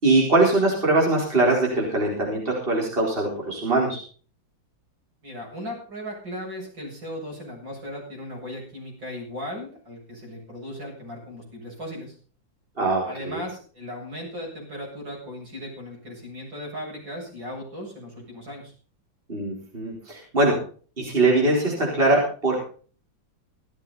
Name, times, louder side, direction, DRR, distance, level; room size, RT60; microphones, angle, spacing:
voice 1, 0.0-4.0 12.8-13.4 19.3-20.5 21.0-22.6, right 2 dB, 30° right, -3 dB, 4.8 m, -22 dB
voice 2, 5.2-12.1 13.0-18.7, left 1 dB, 75° right, -2 dB, 8.5 m, -37 dB
16.0 x 13.5 x 4.2 m, 0.41 s
omnidirectional pair, 2.1 m